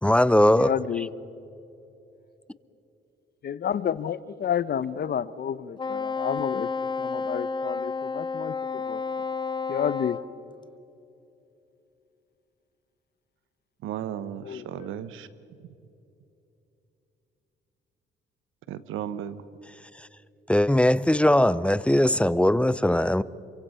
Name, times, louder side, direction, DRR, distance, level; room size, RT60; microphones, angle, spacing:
voice 1, 0.0-0.7 20.5-23.2, left 1 dB, 5° left, 18 dB, 0.6 m, -20 dB
voice 2, 0.6-1.1 3.4-6.7 7.0-9.0 9.7-10.2 14.4-14.9, left 9 dB, 55° left, 16 dB, 0.9 m, -30 dB
Wind instrument woodwind instrument, 5.8-10.3, left 4 dB, 25° left, 0.9 m, -31 dB
voice 3, 13.8-15.3 15.6-15.7 18.7-19.4, right 10 dB, 85° right, 14 dB, 1.1 m, -35 dB
27.5 x 24.0 x 5.7 m, 2.9 s
cardioid pair, 90°, 20 cm